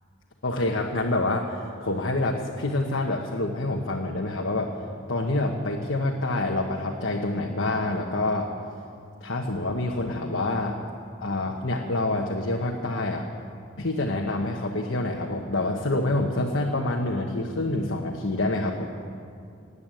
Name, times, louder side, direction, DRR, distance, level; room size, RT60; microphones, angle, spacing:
voice 1, 0.4-4.7 5.1-8.5 9.2-10.8 11.2-13.3 13.8-18.9, left 2 dB, 85° left, 0 dB, 1.3 m, -27 dB
18.5 x 8.4 x 9.1 m, 2.4 s
head